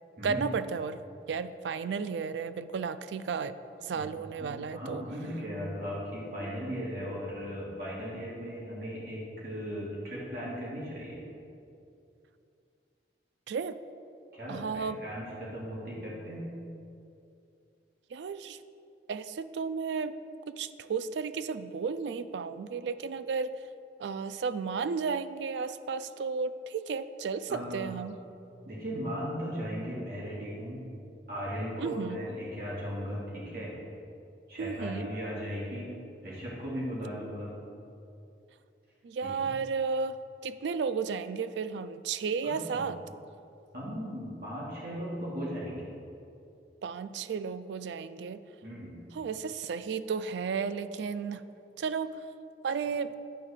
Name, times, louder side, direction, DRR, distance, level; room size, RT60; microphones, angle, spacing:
voice 1, 0.2-1.0 1.3-3.6 3.8-5.1 13.5-13.8 14.5-15.0 18.1-18.6 19.1-20.2 20.6-23.6 24.0-28.1 31.8-32.2 34.6-35.1 39.0-40.2 40.4-43.0 46.8-48.4 49.1-51.4 51.8-52.2 52.6-53.1, right 5 dB, 80° right, 13 dB, 0.3 m, -33 dB
voice 2, 3.9-11.2 14.3-16.5 27.5-27.9 28.6-30.8 31.3-33.7 34.5-35.9 36.2-37.5 39.2-39.5 42.4-42.9 43.7-45.9 48.6-49.0, equal, 55° right, -7 dB, 1.8 m, -37 dB
9.1 x 3.6 x 6.6 m, 2.6 s
head